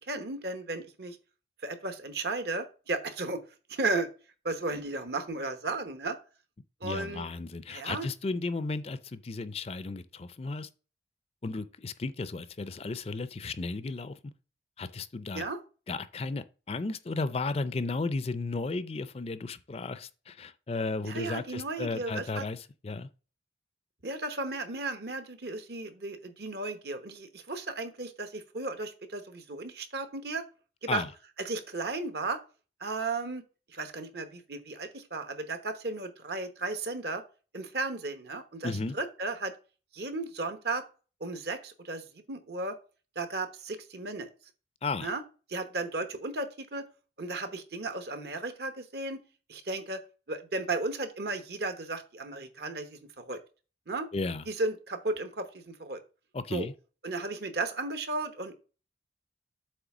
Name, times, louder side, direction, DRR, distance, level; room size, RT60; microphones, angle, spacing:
voice 1, 0.1-1.2 1.6-3.4 3.7-4.1 4.4-6.2 6.8-7.3 7.7-8.1 15.3-15.6 21.0-22.4 24.0-30.4 30.8-31.0 31.4-32.4 32.8-33.4 33.7-37.2 37.5-39.5 39.9-40.8 41.2-42.8 43.1-44.3 45.0-45.2 45.5-46.8 47.2-49.2 49.5-50.0 50.3-53.4 53.9-54.1 54.5-56.0 56.5-56.7 57.0-58.6, right 3 dB, 65° right, 1.1 m, -34 dB
voice 2, 6.8-10.7 11.4-14.2 14.8-15.5 15.9-23.1 30.9-31.1 38.6-38.9 44.8-45.1 54.1-54.5 56.3-56.7, left 3 dB, 35° left, 0.4 m, -34 dB
7.9 x 3.2 x 6.1 m
head